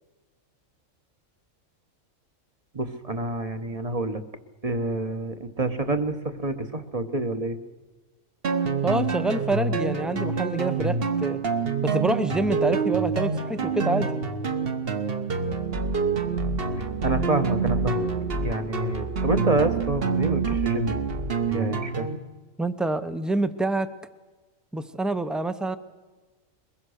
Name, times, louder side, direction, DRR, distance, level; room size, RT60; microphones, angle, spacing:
voice 1, 2.7-4.2 4.6-7.6 16.8-18.1 18.4-20.9 21.5-22.1, right 2 dB, 30° right, 8 dB, 1.1 m, -28 dB
sound 1, 8.4-22.2, right 4 dB, 45° right, 1.4 m, -26 dB
voice 2, 8.8-11.4 11.8-14.1 20.5-20.6 22.6-23.9 24.7-25.8, right 2 dB, ahead, 11 dB, 0.5 m, -26 dB
22.5 x 21.0 x 6.5 m, 1.3 s
omnidirectional pair, 1.4 m